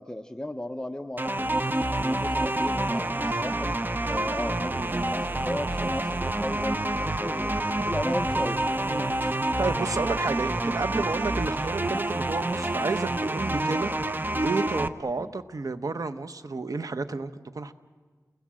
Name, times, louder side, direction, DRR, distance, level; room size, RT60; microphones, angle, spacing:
voice 1, 0.0-1.6 2.0-3.7 4.1-7.5 7.8-8.6 15.2-15.3, left 1 dB, 10° left, 7 dB, 0.9 m, -35 dB
sound 1, 1.2-14.9, right 2 dB, 30° right, 0.9 m, -28 dB
voice 2, 8.9-13.9 14.4-17.7, right 3 dB, 65° right, 11 dB, 1.1 m, -31 dB
30.0 x 20.5 x 7.7 m, 1.5 s
wide cardioid pair, 55°, 6 cm